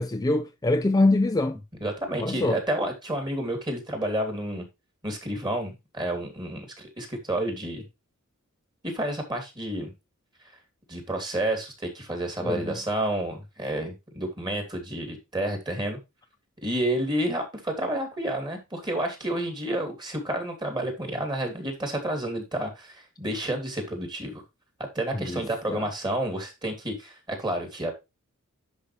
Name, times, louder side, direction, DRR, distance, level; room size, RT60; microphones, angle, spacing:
voice 1, 0.0-1.6 2.2-2.6 12.4-12.8 25.1-25.9, left 2 dB, 15° left, 0.5 m, -25 dB
voice 2, 1.8-4.6 5.0-7.8 8.8-9.9 10.9-16.0 16.6-24.4 24.9-27.9, right 1 dB, 20° right, 2.9 m, -30 dB
10.5 x 5.4 x 3.3 m
head